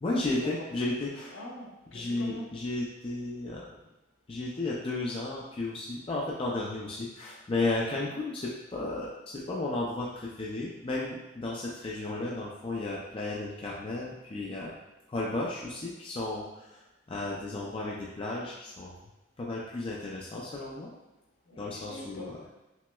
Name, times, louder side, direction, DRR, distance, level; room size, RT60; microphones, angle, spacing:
voice 1, 0.0-1.4 1.9-3.7 4.3-10.1 10.4-14.7 15.1-16.8 17.1-19.0 19.4-20.9 21.6-22.4, left 2 dB, 25° left, -4 dB, 0.4 m, -33 dB
voice 2, 1.3-2.5 21.4-22.5, equal, 70° left, -3 dB, 0.8 m, -43 dB
5.7 x 2.1 x 2.2 m, 1.0 s
head